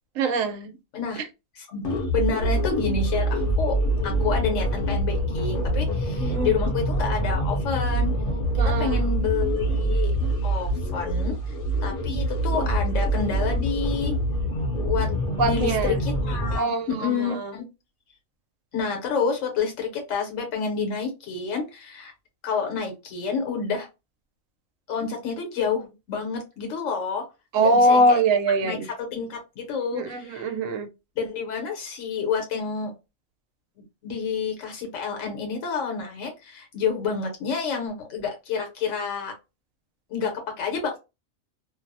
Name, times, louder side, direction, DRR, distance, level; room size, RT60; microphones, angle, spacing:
voice 1, 0.2-0.7 6.2-6.5 8.6-9.0 15.4-16.0 16.6-17.5 27.5-28.9 29.9-30.9, right 1 dB, 80° right, 1.0 m, -22 dB
voice 2, 1.6-1.9 2.1-3.8 4.0-8.1 8.5-10.1 10.4-11.4 11.8-14.1 14.8-15.1 15.4-17.6 18.7-22.1 22.4-23.9 24.9-27.3 27.6-28.2 28.6-30.5 31.2-32.9 34.0-39.3 40.1-41.0, left 5 dB, 70° left, 1.1 m, -29 dB
sound 1, 1.8-16.6, right 1 dB, 50° left, 0.8 m, -25 dB
2.6 x 2.0 x 2.6 m
omnidirectional pair, 1.4 m